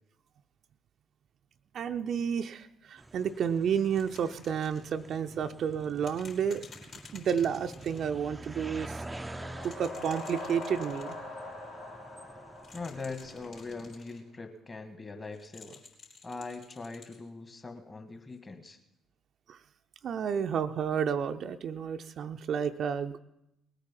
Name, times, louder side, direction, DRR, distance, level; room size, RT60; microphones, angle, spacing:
voice 1, 1.7-6.6 7.1-9.0 9.6-11.2 19.5-19.6 20.0-23.2, right 7 dB, 50° right, 7 dB, 0.6 m, -31 dB
sound 1, 3.0-14.0, right 2 dB, 15° right, 0.6 m, -47 dB
sound 2, 3.9-4.9 6.0-8.1 9.5-11.2 12.5-14.2 15.3-17.2 18.3-18.4, left 4 dB, 55° left, 3.9 m, -52 dB
sound 3, 9.1-13.7, left 2 dB, 85° left, 4.1 m, -43 dB
voice 2, 12.7-15.8 16.2-18.8, left 3 dB, 25° left, 7 dB, 1.8 m, -41 dB
19.5 x 9.0 x 5.9 m, 0.86 s
figure-of-eight pair, 45°, 0 cm